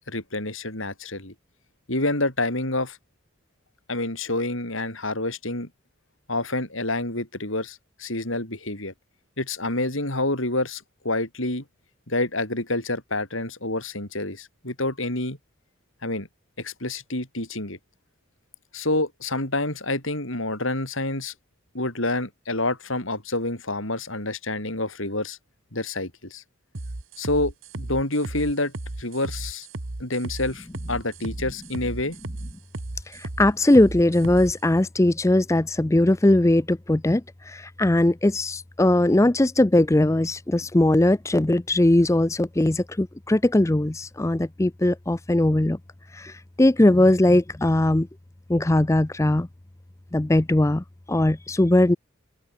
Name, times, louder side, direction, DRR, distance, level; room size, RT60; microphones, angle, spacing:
voice 1, 0.0-1.3 1.9-3.0 3.9-5.7 6.3-8.9 9.4-11.6 12.1-15.4 16.0-16.3 16.6-17.8 18.7-21.3 21.7-25.4 25.7-26.4 27.2-28.7 29.0-29.7 30.0-32.2, left 2 dB, 70° left, 6.9 m, -28 dB
sound 1, 26.7-34.5, right 2 dB, 70° right, 1.4 m, -35 dB
voice 2, 33.1-45.8 46.1-48.1 48.5-49.5 50.1-52.0, left 1 dB, 15° left, 0.5 m, -20 dB
open air
head